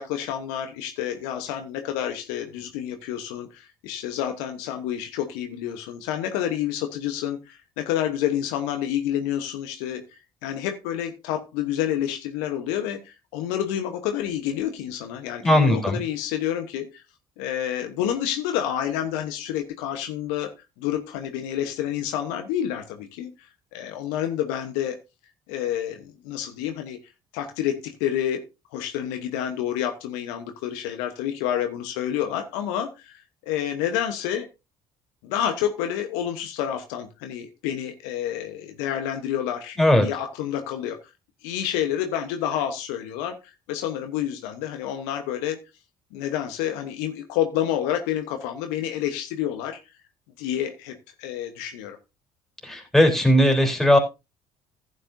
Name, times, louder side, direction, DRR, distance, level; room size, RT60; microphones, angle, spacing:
voice 1, 0.0-17.0 17.4-25.0 25.5-27.0 27.3-28.4 28.7-34.5 35.2-41.0 41.4-43.4 43.7-45.6 46.1-49.8 50.4-52.0, left 10 dB, 75° left, 6 dB, 1.1 m, -29 dB
voice 2, 15.4-16.0 39.8-40.1 52.6-54.0, left 1 dB, ahead, 2 dB, 3.7 m, -18 dB
15.0 x 8.9 x 2.7 m, 0.26 s
hypercardioid pair, 55°, 17 cm